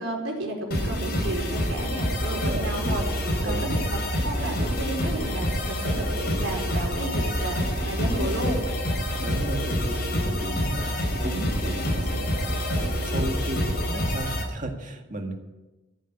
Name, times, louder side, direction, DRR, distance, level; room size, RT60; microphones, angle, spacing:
voice 1, 0.0-8.6, right 1 dB, 90° right, 1 dB, 4.6 m, -33 dB
sound 1, 0.7-14.4, equal, 50° left, 4.6 m, -27 dB
voice 2, 2.3-2.7 3.4-3.8 4.4-4.6 9.2-15.3, right 1 dB, 40° right, 3 dB, 1.9 m, -35 dB
15.0 x 9.1 x 8.5 m, 1.1 s
head